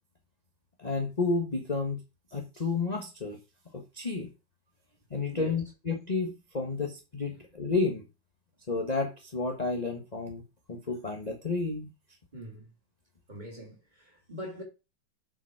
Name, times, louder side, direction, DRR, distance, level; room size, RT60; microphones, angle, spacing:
voice 1, 0.8-2.0 2.3-3.4 3.7-4.3 5.1-8.0 8.7-10.4 10.7-11.9, left 3 dB, 20° left, 1.4 m, -31 dB
voice 2, 12.3-12.7 13.3-14.6, equal, 20° right, 3.5 m, -43 dB
7.1 x 7.1 x 4.7 m
omnidirectional pair, 2.1 m